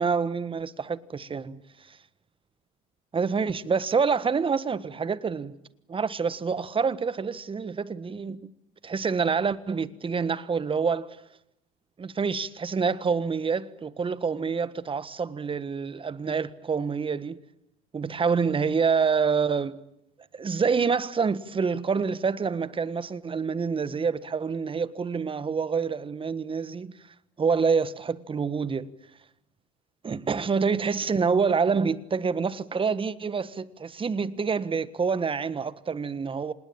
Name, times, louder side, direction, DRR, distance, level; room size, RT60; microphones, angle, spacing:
voice 1, 0.0-1.6 1.9-2.0 3.1-5.6 5.9-8.5 8.8-11.2 12.0-17.4 17.9-19.8 20.3-26.9 27.4-28.9 30.0-36.5, right 5 dB, 25° right, 1.6 m, -27 dB
26.5 x 20.0 x 8.8 m
hypercardioid pair, 75°, 19 cm